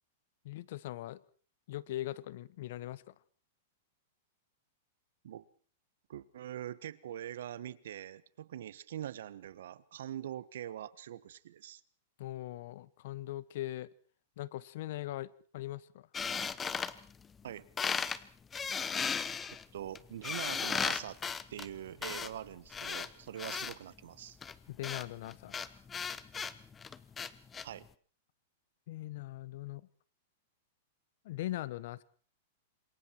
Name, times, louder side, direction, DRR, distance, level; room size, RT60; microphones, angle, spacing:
voice 1, 0.4-1.2 1.7-3.1 12.2-13.9 14.4-16.1 24.7-25.6 28.9-29.9 31.2-32.0, left 15 dB, 60° left, 1.1 m, -40 dB
voice 2, 6.1-11.8 17.4-17.7 19.7-21.2 21.5-24.4 27.6-27.9, right 11 dB, 75° right, 1.3 m, -43 dB
sound 1, 16.1-17.5 17.8-18.2 18.5-23.7 24.4-27.7, left 6 dB, 15° left, 1.0 m, -36 dB
27.0 x 22.0 x 4.6 m
supercardioid pair, 150°, 0 cm